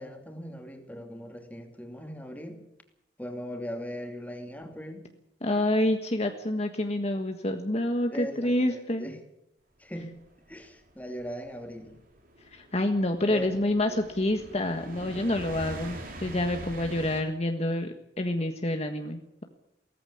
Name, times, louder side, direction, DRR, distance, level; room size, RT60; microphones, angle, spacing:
voice 1, 0.0-2.6 3.2-5.1 8.1-9.2 9.8-10.2 10.5-12.0 13.3-13.5 13.9-14.0, equal, 10° left, 4 dB, 2.8 m, -39 dB
voice 2, 5.4-9.1 12.5-19.4, left 1 dB, 40° left, 5 dB, 1.5 m, -28 dB
sound 1, 10.2-17.2, right 1 dB, 55° right, 4.2 m, -43 dB
18.5 x 14.5 x 10.0 m, 0.84 s
head